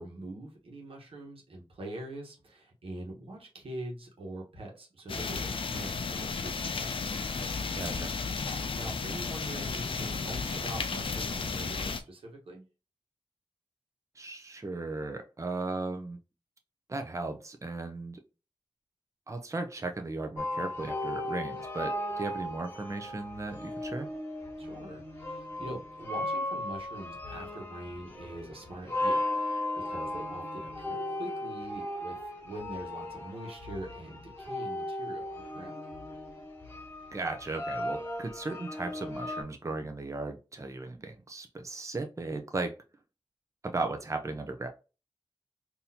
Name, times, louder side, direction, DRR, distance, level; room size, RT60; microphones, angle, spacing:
voice 1, 0.0-6.8 8.7-12.7 24.6-35.7, right 1 dB, 90° right, -1 dB, 1.2 m, -43 dB
sound 1, 5.1-12.0, left 4 dB, 70° left, 0.5 m, -33 dB
voice 2, 7.7-8.1 14.2-16.2 16.9-18.2 19.3-24.1 37.1-42.7 43.6-44.7, right 3 dB, 35° right, 5 dB, 0.6 m, -36 dB
sound 2, 20.4-39.4, left 1 dB, 25° left, 1.5 m, -36 dB
4.0 x 2.7 x 2.8 m, 0.31 s
cardioid pair, 50°, 9 cm